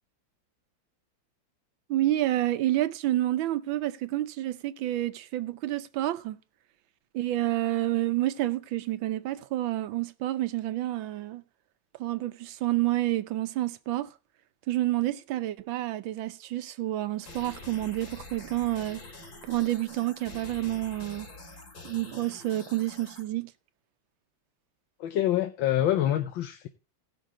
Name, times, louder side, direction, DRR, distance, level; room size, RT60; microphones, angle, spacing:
voice 1, 1.9-6.4 7.1-11.4 12.0-14.1 14.7-19.0 19.4-21.3 21.8-23.5, right 15 dB, 90° right, 1.5 m, -29 dB
sound 1, 17.2-23.2, left 2 dB, 50° left, 2.5 m, -46 dB
voice 2, 25.0-26.7, left 12 dB, 85° left, 1.5 m, -26 dB
17.0 x 6.3 x 3.7 m
omnidirectional pair, 2.1 m